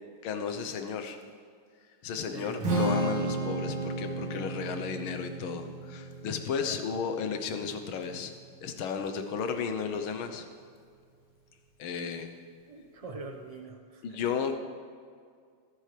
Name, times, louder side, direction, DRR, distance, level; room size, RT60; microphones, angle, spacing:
voice 1, 0.2-1.2 2.0-8.3 8.6-10.5 11.8-12.3 14.0-14.6, left 6 dB, 70° left, 7 dB, 1.8 m, -34 dB
voice 2, 2.3-2.7 6.6-6.8 12.7-14.3, right 3 dB, 25° right, 3 dB, 0.7 m, -44 dB
Strum, 2.6-8.9, right 2 dB, 70° right, 3.1 m, -34 dB
23.0 x 9.0 x 3.4 m, 2.1 s
omnidirectional pair, 2.4 m